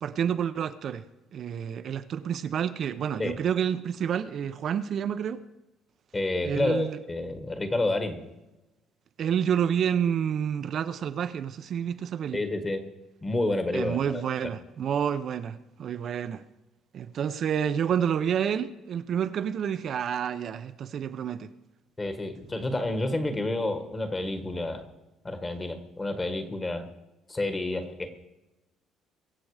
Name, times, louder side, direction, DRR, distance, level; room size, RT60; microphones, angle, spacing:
voice 1, 0.0-1.0 1.3-5.4 6.4-7.0 9.2-12.4 13.7-16.4 16.9-21.5, right 8 dB, 45° right, 0.7 m, -29 dB
voice 2, 6.1-8.2 12.3-12.9 13.2-14.2 22.0-24.8 25.2-26.8 27.3-28.1, left 2 dB, 15° left, 1.5 m, -29 dB
23.0 x 7.7 x 4.9 m
cardioid pair, 155°, 0 cm